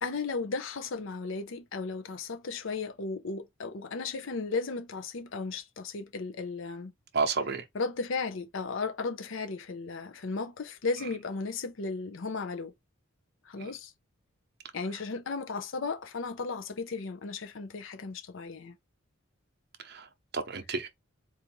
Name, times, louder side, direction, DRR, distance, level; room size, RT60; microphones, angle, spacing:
voice 1, 0.0-6.9 7.7-12.7 13.5-13.9 14.7-18.7, left 4 dB, 65° left, 0.6 m, -35 dB
voice 2, 7.1-7.6 13.6-13.7 19.8-20.9, right 4 dB, 50° right, 0.8 m, -31 dB
4.2 x 2.6 x 4.4 m
head